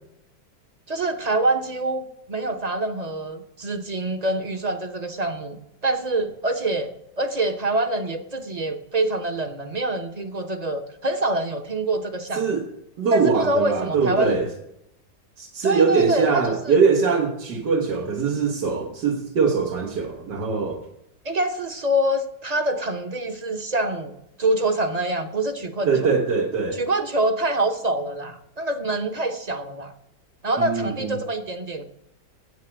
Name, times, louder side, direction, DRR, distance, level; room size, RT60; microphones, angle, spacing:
voice 1, 0.9-6.9 7.2-12.6 13.1-14.4 15.6-16.8 21.2-25.9 26.7-29.9 30.4-31.8, right 1 dB, 35° right, 7 dB, 0.7 m, -25 dB
voice 2, 12.3-12.7 13.0-14.5 15.4-20.8 25.9-26.8 30.6-31.2, right 5 dB, 85° right, 0 dB, 1.9 m, -22 dB
9.3 x 8.2 x 8.8 m, 0.81 s
omnidirectional pair, 1.8 m